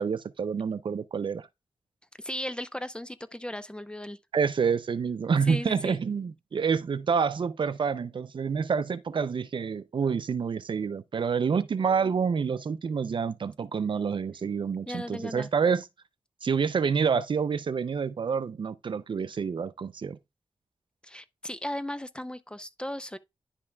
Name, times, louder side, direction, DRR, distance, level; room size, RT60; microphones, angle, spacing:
voice 1, 0.0-1.5 4.3-15.8 16.4-20.2, right 6 dB, 60° right, 0.5 m, -28 dB
voice 2, 2.2-4.2 5.5-6.0 14.9-15.5 21.0-23.2, left 1 dB, 10° left, 0.5 m, -36 dB
10.5 x 5.5 x 2.3 m
cardioid pair, 65°, 9 cm